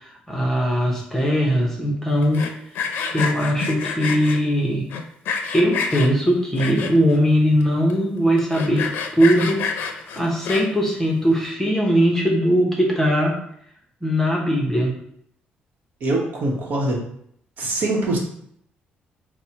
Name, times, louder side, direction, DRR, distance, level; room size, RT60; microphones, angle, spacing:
voice 1, 0.0-2.5 3.1-4.9 5.5-8.9 9.1-9.6 9.9-13.4 14.0-14.9, equal, 10° left, -1 dB, 0.7 m, -20 dB
Sawing, 2.2-4.4 4.9-6.1 6.6-7.2 7.6-7.7 7.9-8.0 8.4-10.9, left 5 dB, 75° left, 0.5 m, -28 dB
voice 2, 16.0-17.0 17.6-18.2, right 2 dB, 55° right, -1 dB, 0.9 m, -23 dB
4.2 x 2.0 x 4.3 m, 0.69 s
cardioid pair, 150°, 4 cm